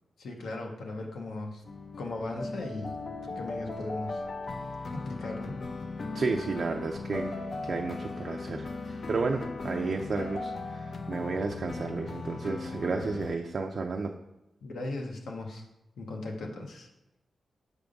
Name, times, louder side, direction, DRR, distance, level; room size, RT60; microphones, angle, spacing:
voice 1, 0.2-1.6 2.0-3.0 3.4-4.2 4.9-5.6 14.6-15.6 16.0-16.9, left 2 dB, 80° left, 2 dB, 1.2 m, -37 dB
sound 1, 1.7-13.4, left 3 dB, 40° left, 0.3 m, -38 dB
voice 2, 6.1-14.1, right 4 dB, 45° right, 2 dB, 0.4 m, -32 dB
6.9 x 3.5 x 5.3 m, 0.94 s
wide cardioid pair, 175°, 0 cm